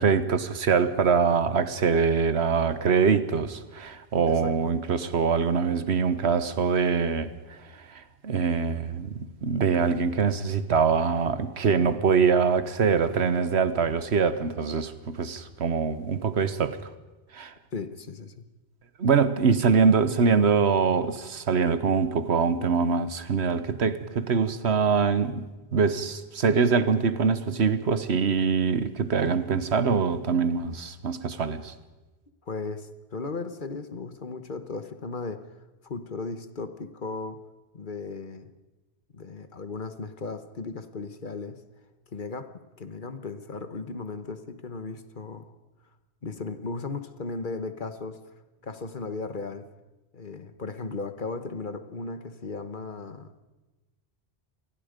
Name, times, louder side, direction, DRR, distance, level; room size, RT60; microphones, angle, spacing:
voice 1, 0.0-7.6 7.9-16.8 17.3-17.5 19.0-25.5 25.7-31.7, right 5 dB, 90° right, 12 dB, 1.4 m, -24 dB
voice 2, 4.3-4.8 17.7-18.5 32.5-35.4 35.8-37.4 37.7-38.5 39.1-41.6 42.1-42.5 42.8-45.5 46.2-48.2 48.6-49.6 50.1-53.3, left 3 dB, 50° left, 10 dB, 1.3 m, -36 dB
27.0 x 20.5 x 5.2 m, 1.1 s
omnidirectional pair, 1.1 m